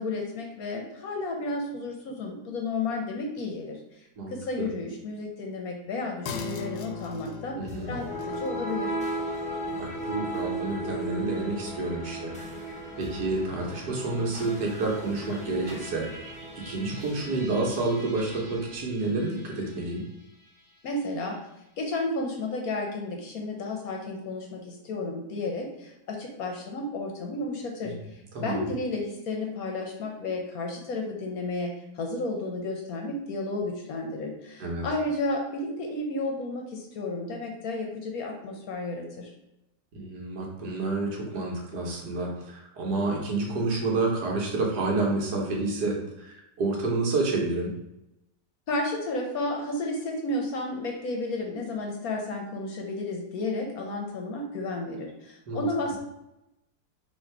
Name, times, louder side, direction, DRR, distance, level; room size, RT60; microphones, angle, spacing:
voice 1, 0.0-4.0 4.3-7.6 7.9-8.9 20.8-21.4 21.8-39.3 48.7-56.0, left 2 dB, 65° left, 2 dB, 1.0 m, -32 dB
voice 2, 4.2-4.7 7.6-7.9 9.8-12.3 13.0-16.1 16.6-20.0 27.8-27.9 28.3-28.7 34.6-34.8 39.9-47.7 55.5-55.6, right 3 dB, 65° right, -1 dB, 1.6 m, -29 dB
sound 1, 6.3-13.3 13.6-13.7, left 5 dB, 90° left, 1.3 m, -41 dB
sound 2, 7.7-20.0, right 1 dB, 10° left, 0.4 m, -36 dB
4.1 x 2.8 x 4.6 m, 0.89 s
omnidirectional pair, 1.9 m